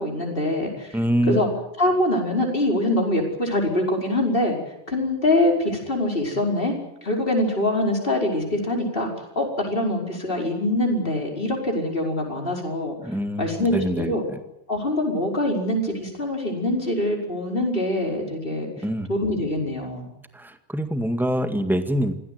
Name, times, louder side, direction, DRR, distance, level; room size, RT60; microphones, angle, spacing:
voice 1, 0.0-1.0 1.3-1.5 1.8-4.6 4.9-12.9 13.4-14.2 14.7-18.7 19.1-20.0, left 1 dB, 50° left, 1 dB, 5.5 m, -24 dB
voice 2, 0.9-1.4 13.0-14.4 18.8-19.1 20.3-22.1, equal, ahead, 8 dB, 1.8 m, -25 dB
26.0 x 17.0 x 9.4 m, 0.82 s
omnidirectional pair, 1.2 m